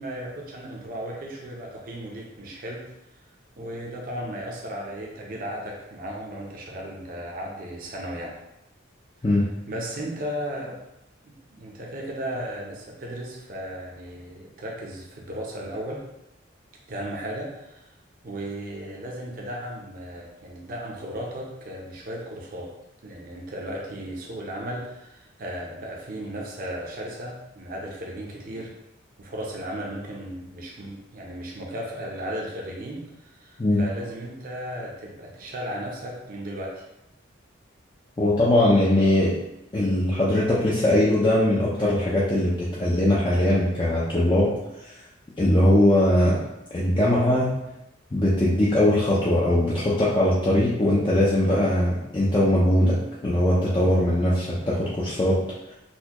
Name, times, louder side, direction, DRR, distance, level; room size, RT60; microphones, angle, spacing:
voice 1, 0.0-2.9 3.6-8.3 9.7-10.8 11.2-16.0 16.9-17.9 18.2-22.7 23.0-28.7 29.2-36.8, right 1 dB, 45° right, -2 dB, 0.6 m, -35 dB
voice 2, 38.2-39.3 39.7-44.5 44.8-44.9 45.4-46.4 46.7-47.5 48.1-53.0 53.2-55.4, left 1 dB, 25° left, -7 dB, 0.4 m, -21 dB
4.2 x 2.2 x 2.8 m, 0.89 s
head